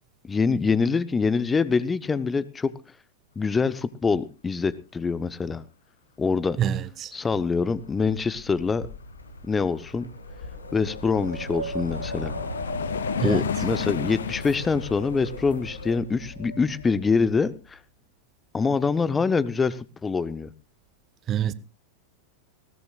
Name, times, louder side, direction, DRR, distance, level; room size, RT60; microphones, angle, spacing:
voice 1, 0.2-2.7 3.4-5.6 6.2-6.6 7.1-8.9 9.5-10.1 10.7-12.3 13.2-17.8 18.5-20.5, left 5 dB, 15° left, 0.7 m, -25 dB
voice 2, 6.6-7.1 13.2-13.5 21.3-21.5, right 10 dB, 30° right, 1.0 m, -26 dB
Wind, 7.3-17.4, left 1 dB, 85° left, 2.3 m, -36 dB
sound 1, 9.9-10.0 10.3-16.0, left 9 dB, 65° left, 0.7 m, -34 dB
20.0 x 18.0 x 2.4 m
figure-of-eight pair, 90°, 0 cm